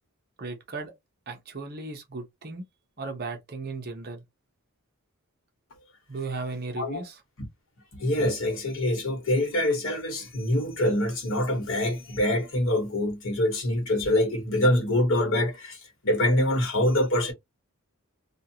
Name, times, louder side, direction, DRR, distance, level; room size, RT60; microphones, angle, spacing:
voice 1, 0.4-0.9 1.3-2.7 3.0-4.2 6.1-7.2, right 3 dB, 45° right, 0.8 m, -36 dB
voice 2, 7.9-15.8 16.0-17.3, left 1 dB, 60° left, 1.2 m, -25 dB
2.6 x 2.3 x 2.8 m
head